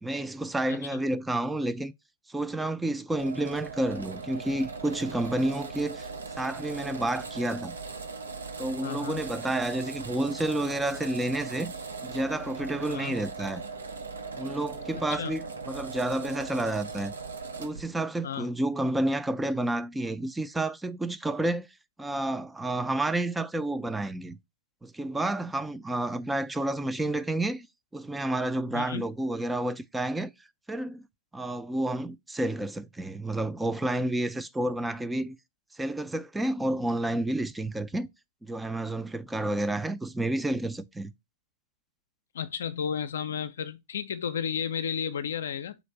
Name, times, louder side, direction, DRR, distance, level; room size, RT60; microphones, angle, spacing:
voice 1, 0.0-1.9 2.3-6.1 6.3-7.8 8.6-11.7 12.0-13.6 14.4-17.1 17.6-21.7 22.0-24.4 24.8-27.7 27.9-30.3 30.7-31.0 31.3-35.4 35.8-38.1 38.4-41.1, right 1 dB, 10° right, 0.4 m, -30 dB
voice 2, 0.7-1.0 8.8-9.2 12.9-13.2 14.9-15.3 18.2-18.5 28.7-29.0 42.3-45.8, left 7 dB, 70° left, 0.4 m, -33 dB
sound 1, 3.2-17.8, right 4 dB, 85° right, 0.6 m, -39 dB
4.0 x 2.5 x 4.2 m
hypercardioid pair, 100°, 0 cm